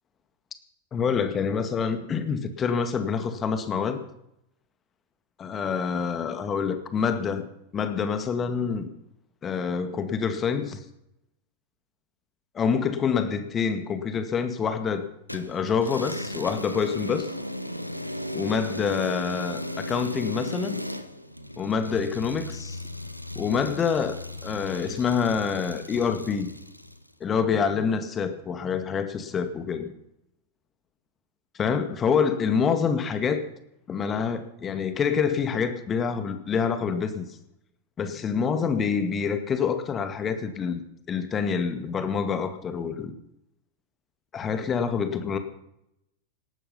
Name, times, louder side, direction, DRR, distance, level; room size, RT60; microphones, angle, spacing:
voice 1, 0.9-4.0 5.4-7.5 7.7-8.9 9.4-10.8 12.5-15.1 15.3-17.3 18.3-20.8 21.6-22.8 23.4-26.5 27.2-29.9 31.6-33.4 33.9-37.3 38.0-40.8 41.1-43.1 44.3-45.4, left 6 dB, 25° left, 9 dB, 2.1 m, -26 dB
sound 1, 15.3-27.1, left 1 dB, 90° left, 1.1 m, -36 dB
18.5 x 12.5 x 5.8 m, 0.81 s
figure-of-eight pair, 90°, 0 cm